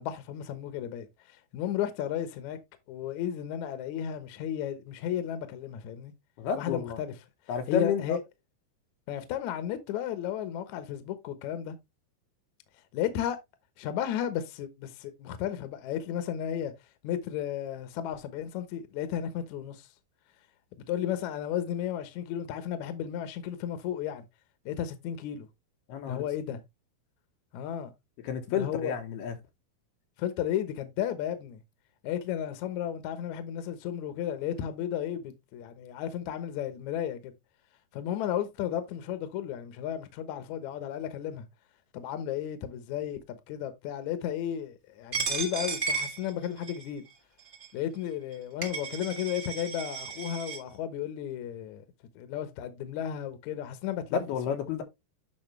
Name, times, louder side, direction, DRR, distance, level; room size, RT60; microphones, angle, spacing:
voice 1, 0.0-2.6 2.9-6.1 6.6-7.1 7.7-8.2 9.1-11.8 12.9-13.4 13.8-16.7 17.0-19.9 20.9-24.3 24.7-25.5 26.1-26.6 27.5-27.9 28.5-29.0 30.2-31.6 32.0-37.3 37.9-41.5 41.9-47.0 47.7-51.8 52.2-54.6, left 10 dB, 65° left, 2.0 m, -33 dB
voice 2, 6.4-7.0 7.5-8.2 25.9-26.2 28.2-29.4 54.1-54.8, left 7 dB, 90° left, 3.4 m, -31 dB
Coin (dropping), 45.1-46.9 47.5-47.7 48.3-48.4 48.6-50.6, right 4 dB, 70° right, 0.5 m, -34 dB
8.7 x 5.9 x 3.2 m
omnidirectional pair, 4.5 m